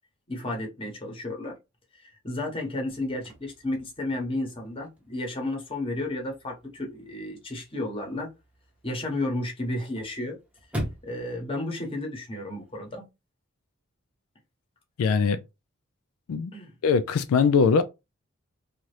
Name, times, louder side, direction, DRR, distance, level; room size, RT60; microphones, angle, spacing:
voice 1, 0.3-1.5 1.9-8.3 8.8-10.4 11.0-13.0 16.5-16.7, left 1 dB, 25° left, 1.0 m, -32 dB
Chirp tweet / Car / Slam, 2.9-12.9, equal, 5° right, 0.7 m, -43 dB
voice 2, 15.0-15.4 16.3-16.5 16.8-17.8, left 5 dB, 90° left, 0.3 m, -21 dB
2.8 x 2.4 x 3.1 m
head